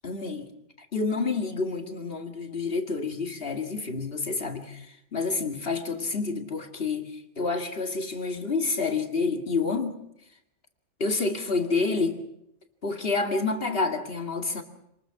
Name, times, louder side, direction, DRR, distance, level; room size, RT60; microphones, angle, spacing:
voice 1, 0.0-0.5 0.9-10.0 11.0-12.2 12.8-14.6, left 4 dB, 50° left, 5 dB, 2.4 m, -28 dB
27.5 x 20.5 x 6.0 m, 0.79 s
omnidirectional pair, 1.3 m